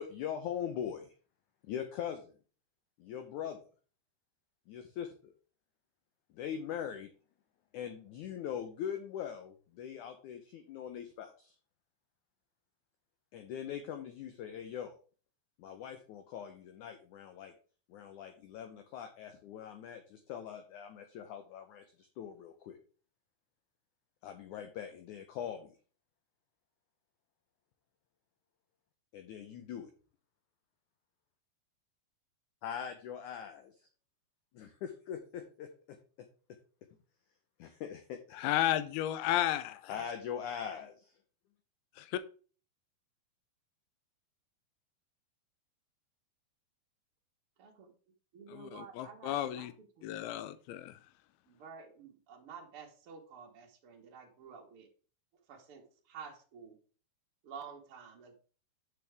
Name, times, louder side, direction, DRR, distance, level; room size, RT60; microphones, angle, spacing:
voice 1, 0.0-1.0 1.7-2.2 3.0-3.6 4.7-5.3 6.3-7.1 7.7-11.5 13.3-14.9 15.6-17.5 17.9-22.8 24.2-25.7 29.1-29.9 32.6-33.7 34.5-35.7 37.6-38.2 39.9-41.0, left 8 dB, 75° left, 1.9 m, -41 dB
voice 2, 38.3-40.0 42.0-42.2 48.5-49.7 50.0-51.0, left 12 dB, 90° left, 2.6 m, -33 dB
voice 3, 47.6-47.9 48.3-49.7 50.1-50.4 51.5-54.9 55.5-56.8 57.4-58.4, right 6 dB, 50° right, 1.7 m, -51 dB
8.6 x 6.7 x 3.4 m
omnidirectional pair, 4.4 m